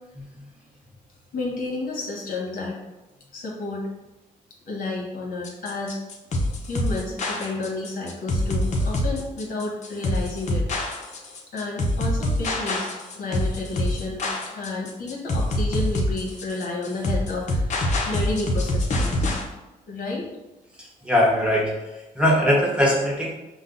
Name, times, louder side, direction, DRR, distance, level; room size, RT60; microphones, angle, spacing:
voice 1, 1.3-2.8 3.3-3.9 4.7-6.0 6.7-10.7 11.5-17.8 18.1-19.3 19.9-20.3, left 2 dB, 70° left, -2 dB, 1.1 m, -31 dB
sound 1, 5.4-19.4, left 1 dB, 50° left, 0.8 m, -25 dB
voice 2, 21.0-21.7 22.2-23.3, equal, 5° right, -3 dB, 1.0 m, -20 dB
5.4 x 2.1 x 3.9 m, 1.0 s
cardioid pair, 105°, 15 cm